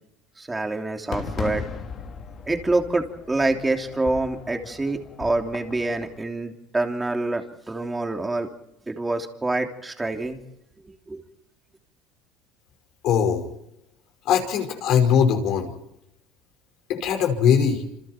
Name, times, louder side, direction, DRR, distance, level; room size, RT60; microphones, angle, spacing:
voice 1, 0.4-1.6 2.5-8.5 8.9-10.4 11.1-11.2, right 2 dB, 15° right, 4 dB, 3.1 m, -26 dB
Fireworks, 1.1-6.2, left 5 dB, 40° left, 3.3 m, -37 dB
voice 2, 13.0-13.5 14.3-15.7 16.9-17.8, left 7 dB, 60° left, 5 dB, 5.2 m, -20 dB
28.0 x 26.5 x 4.5 m, 0.86 s
supercardioid pair, 115°, 0 cm